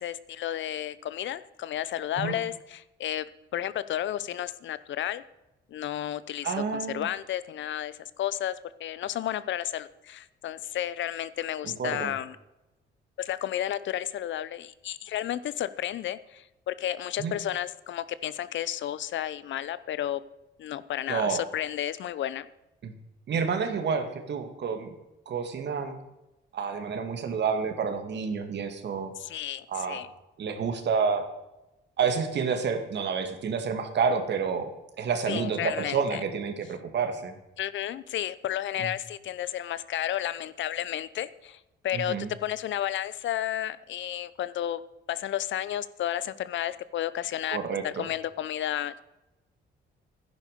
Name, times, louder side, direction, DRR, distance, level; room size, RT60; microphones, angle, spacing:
voice 1, 0.0-3.2 3.5-5.2 5.7-8.5 8.8-12.4 13.2-20.2 20.6-22.5 29.2-30.1 35.3-36.2 37.6-42.1 42.4-44.8 45.1-47.6 47.8-49.0, left 11 dB, 70° left, 16 dB, 0.8 m, -32 dB
voice 2, 6.4-7.1 11.6-12.1 17.2-17.3 21.1-21.4 22.8-22.9 23.3-24.9 25.3-26.0 26.5-29.1 29.7-30.0 30.4-31.3 32.0-34.7 35.0-37.4 38.8-38.9 41.9-42.3 47.5-48.1, right 6 dB, 60° right, 7 dB, 2.2 m, -29 dB
11.5 x 10.5 x 6.8 m, 0.96 s
cardioid pair, 90°, 20 cm